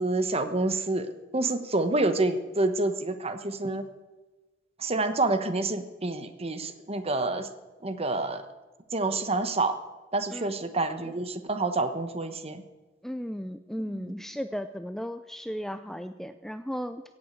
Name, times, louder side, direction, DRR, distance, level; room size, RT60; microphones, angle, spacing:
voice 1, 0.0-3.8 4.8-7.5 7.8-8.4 8.9-9.8 10.1-12.6 13.9-14.1, right 2 dB, 30° right, 9 dB, 1.1 m, -28 dB
voice 2, 13.0-17.0, equal, ahead, 10 dB, 0.4 m, -35 dB
16.0 x 8.7 x 8.4 m, 1.2 s
head